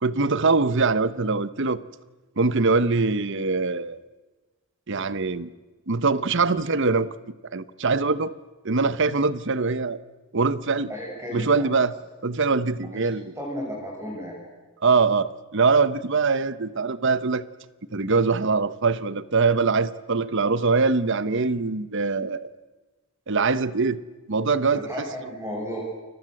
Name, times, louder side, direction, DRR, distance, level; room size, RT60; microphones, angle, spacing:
voice 1, 0.0-1.8 2.4-4.0 4.9-5.5 5.9-7.1 7.5-8.3 8.6-10.0 10.3-10.9 11.3-11.9 12.2-13.3 14.8-17.4 17.9-22.5 23.3-24.0 24.3-24.9, right 4 dB, 60° right, 16 dB, 1.0 m, -23 dB
voice 2, 10.9-11.7 12.9-13.0 13.4-14.4 24.7-25.8, equal, 15° right, -2 dB, 6.5 m, -33 dB
29.5 x 22.5 x 7.8 m, 1.2 s
head